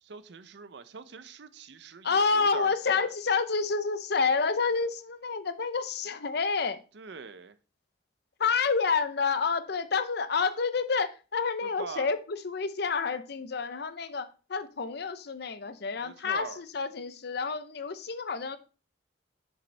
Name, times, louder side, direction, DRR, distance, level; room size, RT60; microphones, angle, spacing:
voice 1, 0.0-3.1 6.9-7.6 11.6-12.1 16.0-16.6, right 5 dB, 65° right, 0.6 m, -43 dB
voice 2, 2.0-6.8 8.4-18.6, left 5 dB, 60° left, 0.7 m, -29 dB
7.1 x 6.8 x 3.3 m
head